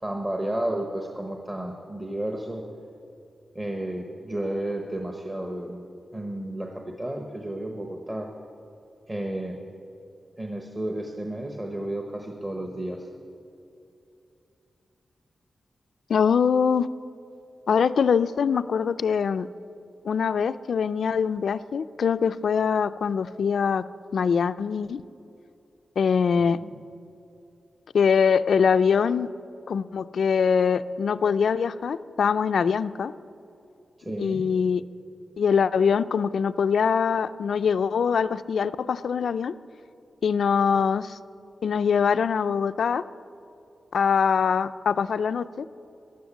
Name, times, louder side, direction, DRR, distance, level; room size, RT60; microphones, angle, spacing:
voice 1, 0.0-2.6 3.5-5.9 6.1-8.3 9.1-9.6 10.4-13.1 26.3-26.7 34.0-34.5, right 1 dB, 20° right, 2 dB, 0.9 m, -32 dB
voice 2, 16.1-16.9 17.7-19.5 20.1-23.8 24.1-25.0 26.0-26.6 27.9-29.3 29.7-33.1 34.2-34.8 35.4-39.5 40.2-41.2 41.6-43.0 43.9-45.7, left 6 dB, 75° left, 13 dB, 0.4 m, -23 dB
15.0 x 10.5 x 7.1 m, 2.7 s
wide cardioid pair, 180°, 0 cm